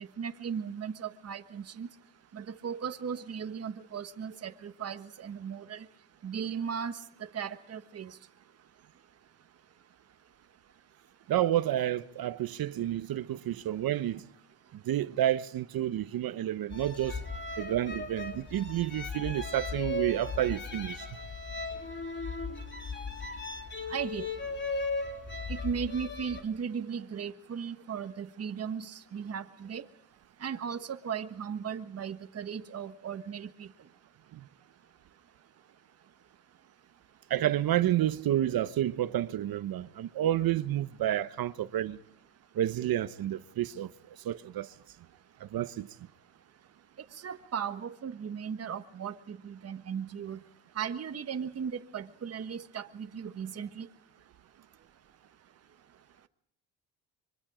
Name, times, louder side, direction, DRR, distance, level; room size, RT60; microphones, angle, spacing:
voice 1, 0.0-1.9 2.3-5.9 6.2-7.0 7.3-8.2 23.9-24.3 25.5-29.8 30.4-33.7 47.2-50.4 50.7-53.9, right 7 dB, 35° right, 1.4 m, -37 dB
voice 2, 11.3-14.2 14.8-17.2 17.6-21.0 34.3-34.4 37.3-42.0 42.5-43.9 44.2-44.7 45.4-45.9, right 12 dB, 55° right, 0.9 m, -30 dB
sound 1, 16.7-26.4, left 3 dB, 25° left, 3.2 m, -37 dB
25.0 x 23.5 x 5.0 m
cardioid pair, 95°, 44 cm